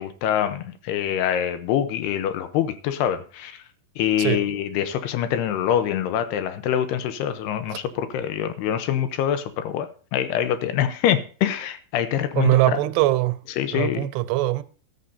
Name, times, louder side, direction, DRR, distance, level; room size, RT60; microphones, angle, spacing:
voice 1, 0.0-3.6 4.0-12.8 13.6-14.1, left 10 dB, 85° left, 2.8 m, -25 dB
voice 2, 12.4-13.4 13.7-14.6, right 17 dB, 85° right, 2.8 m, -21 dB
14.0 x 13.5 x 2.7 m
omnidirectional pair, 4.8 m